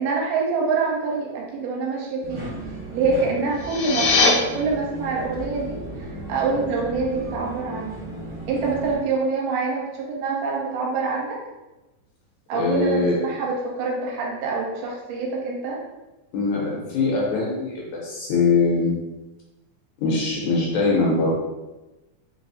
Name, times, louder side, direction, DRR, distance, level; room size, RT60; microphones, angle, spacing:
voice 1, 0.0-2.5 2.9-5.8 6.3-8.0 8.5-11.4 12.5-15.8, right 4 dB, 80° right, -2 dB, 2.4 m, -25 dB
sound 1, 2.2-8.9, right 1 dB, 60° right, 0.8 m, -35 dB
sound 2, 3.5-4.3, left 4 dB, 90° left, 2.3 m, -20 dB
voice 2, 12.5-13.2 16.3-19.0 20.0-21.3, left 4 dB, 70° left, -4 dB, 1.9 m, -22 dB
5.2 x 2.0 x 4.0 m, 1.1 s
omnidirectional pair, 3.9 m